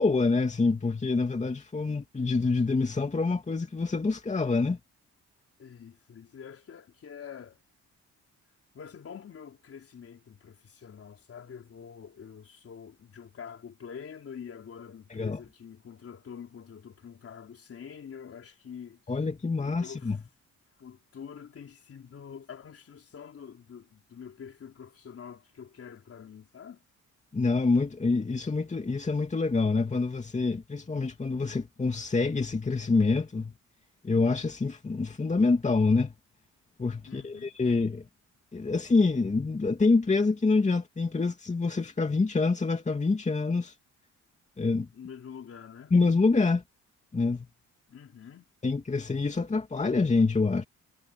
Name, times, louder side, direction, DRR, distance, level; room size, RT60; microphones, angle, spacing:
voice 1, 0.0-4.8 15.1-15.4 19.1-20.2 27.3-33.5 34.0-36.1 36.8-38.1 38.5-43.7 44.6-44.9 45.9-46.6 47.1-47.5 48.6-50.6, left 3 dB, 25° left, 2.7 m, -26 dB
voice 2, 5.6-7.6 8.7-19.0 19.6-20.2 20.8-26.8 37.1-37.5 44.9-45.9 47.9-48.5, left 7 dB, 50° left, 4.1 m, -46 dB
cardioid pair, 90°, 30 cm